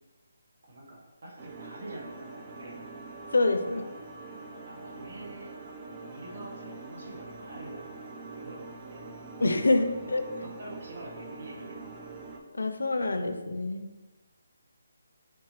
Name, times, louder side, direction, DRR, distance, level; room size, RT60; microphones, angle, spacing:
voice 1, 0.6-2.9 3.6-3.9 4.6-5.5 6.0-9.1 10.4-12.1, right 1 dB, 55° right, -3 dB, 1.1 m, -46 dB
sound 1, 1.4-12.4, right 3 dB, 25° right, 0.3 m, -44 dB
voice 2, 3.3-3.8 9.4-10.2 12.5-13.8, left 2 dB, 90° left, 7 dB, 0.4 m, -26 dB
3.5 x 2.8 x 2.9 m, 1.2 s
hypercardioid pair, 165°, 0 cm